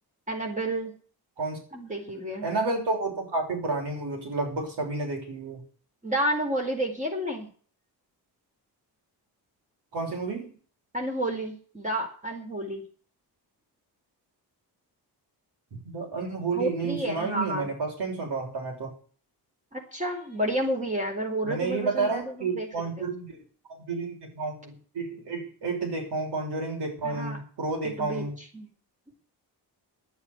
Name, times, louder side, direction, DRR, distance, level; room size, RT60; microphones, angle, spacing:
voice 1, 0.3-0.9 1.7-2.4 6.0-7.5 10.9-12.8 16.5-17.7 19.7-22.7 23.0-23.1 27.0-27.4 27.8-28.3 28.5-28.7, right 1 dB, 20° right, 2 dB, 4.2 m, -30 dB
voice 2, 2.4-5.6 9.9-10.5 15.8-18.9 21.4-23.4 23.7-28.3, right 3 dB, 90° right, 1 dB, 6.8 m, -31 dB
11.0 x 8.8 x 9.6 m, 0.43 s
wide cardioid pair, 180°, 39 cm